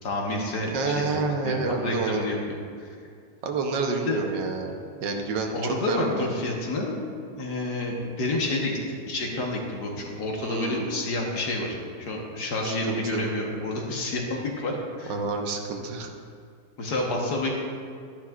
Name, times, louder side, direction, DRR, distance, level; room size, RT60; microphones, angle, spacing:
voice 1, 0.0-1.1 1.4-2.9 4.1-4.2 5.5-6.9 7.4-14.7 15.0-15.1 16.8-17.5, left 2 dB, 65° left, -1 dB, 1.8 m, -29 dB
voice 2, 0.7-2.3 3.4-4.7 5.0-6.3 10.4-11.0 12.6-13.3 15.1-16.1, right 4 dB, 80° right, 3 dB, 1.6 m, -29 dB
12.0 x 10.0 x 2.4 m, 2.2 s
omnidirectional pair, 1.9 m